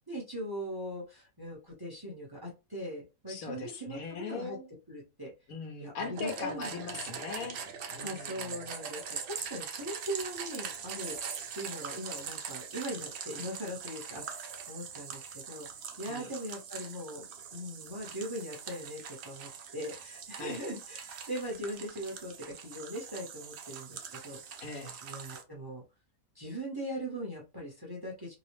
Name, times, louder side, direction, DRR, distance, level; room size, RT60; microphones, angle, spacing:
voice 1, 0.1-4.6 4.9-5.3 5.8-6.7 8.0-11.2 11.5-15.7 16.0-17.3 17.5-22.3 22.6-24.4 25.0-25.8 26.3-28.3, equal, 20° right, 0.7 m, -40 dB
voice 2, 3.3-4.7 5.5-7.6 7.9-8.6 16.1-16.3 20.4-20.6 24.6-25.0, left 5 dB, 80° left, 1.2 m, -40 dB
sound 1, 6.2-25.4, right 7 dB, 65° right, 0.7 m, -42 dB
2.8 x 2.0 x 3.0 m
omnidirectional pair, 1.5 m